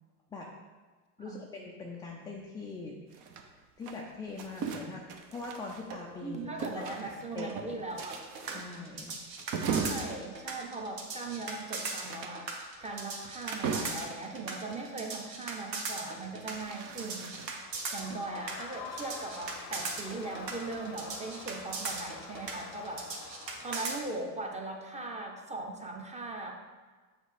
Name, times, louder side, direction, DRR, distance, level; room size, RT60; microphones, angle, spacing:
voice 1, 1.2-2.9 3.8-5.0 5.3-7.5 7.8-7.9 8.5-9.1 18.0-18.1, left 3 dB, 10° left, -1 dB, 0.3 m, -42 dB
sound 1, 3.1-6.2 6.6-14.3 16.1-17.8, right 5 dB, 40° right, 0.9 m, -39 dB
voice 2, 6.2-8.2 9.5-17.3 17.9-23.1 23.6-26.5, right 3 dB, 15° right, 2 dB, 1.0 m, -39 dB
sound 2, 8.0-24.0, right 4 dB, 85° right, 1.3 m, -38 dB
Crowd, 17.5-24.3, left 6 dB, 35° left, 0.7 m, -47 dB
6.2 x 4.3 x 5.1 m, 1.4 s
hypercardioid pair, 95°, 48 cm